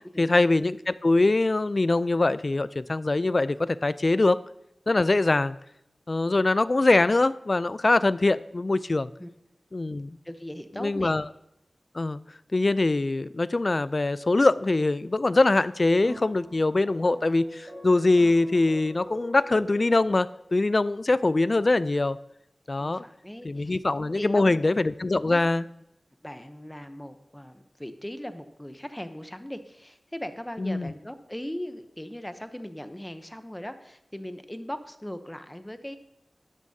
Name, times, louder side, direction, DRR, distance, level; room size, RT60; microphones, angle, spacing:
voice 1, 0.2-4.4 4.9-5.6 6.1-9.1 9.7-10.1 10.8-11.2 11.9-12.2 12.5-22.2 22.7-23.0 23.4-25.6 30.6-30.9, left 2 dB, 45° left, 16 dB, 0.3 m, -23 dB
voice 2, 10.2-11.2 22.8-23.8 24.2-24.7 25.3-25.4 26.2-36.0, left 1 dB, 10° left, 9 dB, 0.8 m, -39 dB
sound 1, 16.0-20.5, equal, 45° right, 4.6 m, -44 dB
12.5 x 10.5 x 2.8 m, 0.80 s
wide cardioid pair, 60°, 0 cm